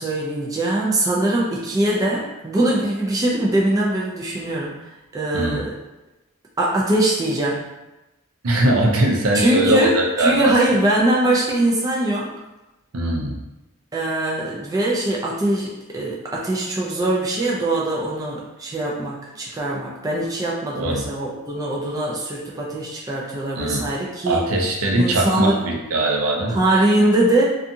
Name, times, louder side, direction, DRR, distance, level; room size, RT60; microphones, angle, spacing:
voice 1, 0.0-5.7 6.6-7.6 9.3-12.3 13.9-24.5 24.9-25.6 26.5-27.4, right 1 dB, 15° right, -4 dB, 0.3 m, -22 dB
voice 2, 5.3-5.6 8.4-10.6 12.9-13.4 20.7-21.1 23.5-23.9 24.2-26.6, right 1 dB, 70° right, 0 dB, 0.5 m, -20 dB
2.6 x 2.3 x 2.6 m, 1.0 s
head